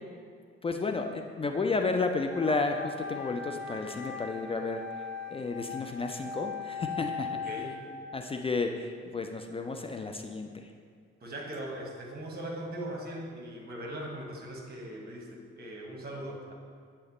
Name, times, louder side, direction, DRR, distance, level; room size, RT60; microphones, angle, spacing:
voice 1, 0.6-5.0 5.3-7.5 8.1-10.7, left 3 dB, 15° left, 4 dB, 0.3 m, -32 dB
Wind instrument woodwind instrument, 2.3-8.2, left 5 dB, 5° right, 1.2 m, -39 dB
voice 2, 7.3-7.8 11.2-16.5, right 1 dB, 25° right, 0 dB, 1.3 m, -40 dB
7.9 x 4.4 x 3.0 m, 2.1 s
figure-of-eight pair, 40°, 35 cm